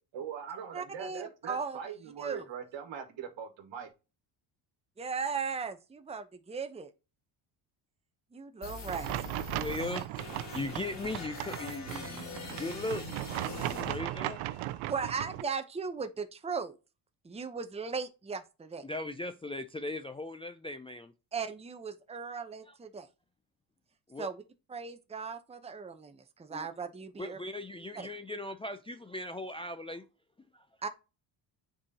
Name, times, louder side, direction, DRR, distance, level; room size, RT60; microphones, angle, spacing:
voice 1, 0.1-3.9, right 8 dB, 65° right, 1.6 m, -41 dB
voice 2, 0.7-1.8 2.2-2.4 5.0-6.9 8.3-9.5 14.9-16.7 17.2-18.8 21.3-23.1 24.2-24.4 24.7-27.4 27.9-28.1 30.8-30.9, right 5 dB, 15° right, 0.8 m, -37 dB
sound 1, 8.6-14.6, left 3 dB, 35° left, 2.7 m, -43 dB
sound 2, 8.9-15.4, right 16 dB, 80° right, 0.6 m, -37 dB
voice 3, 9.5-14.4 18.8-21.1 22.7-22.8 24.1-24.3 26.5-26.7 27.2-30.0 30.5-30.6, left 2 dB, 10° left, 0.4 m, -39 dB
7.4 x 4.8 x 2.8 m
supercardioid pair, 75°, 48 cm